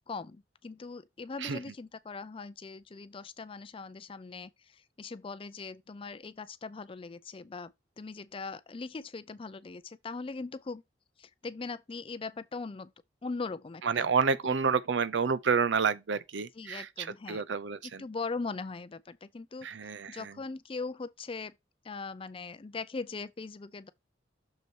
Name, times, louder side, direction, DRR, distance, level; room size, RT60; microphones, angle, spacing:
voice 1, 0.1-10.8 11.2-12.9 13.2-14.1 14.4-14.6 16.5-17.4 17.8-21.5 21.8-23.9, left 4 dB, 30° left, 0.4 m, -40 dB
voice 2, 13.8-18.0 19.6-20.3, right 5 dB, 75° right, 0.6 m, -29 dB
6.7 x 4.1 x 4.6 m
head